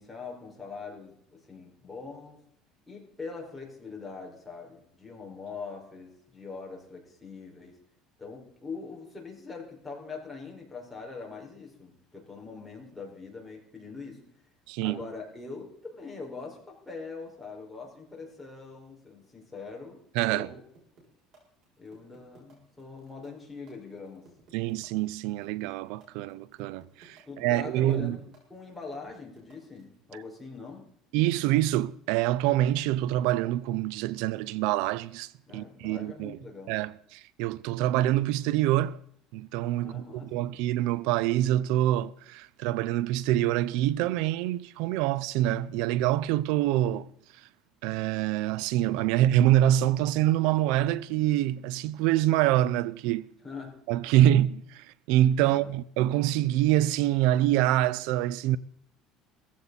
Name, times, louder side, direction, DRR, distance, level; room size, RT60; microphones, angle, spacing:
voice 1, 0.0-2.4 2.9-7.8 8.2-14.3 14.8-20.6 21.8-24.3 27.2-28.2 28.5-30.9 35.4-36.8 39.8-40.5 53.4-53.8 54.2-54.4 55.4-55.7, left 4 dB, 10° left, 5.0 m, -42 dB
voice 2, 14.7-15.0 20.1-20.5 24.5-28.2 31.1-36.4 36.7-39.0 39.3-47.5 47.8-53.3 53.9-58.6, right 13 dB, 75° right, 0.5 m, -26 dB
sound 1, 20.7-30.0, right 4 dB, 50° right, 7.0 m, -58 dB
17.5 x 15.0 x 4.1 m
cardioid pair, 140°, 0 cm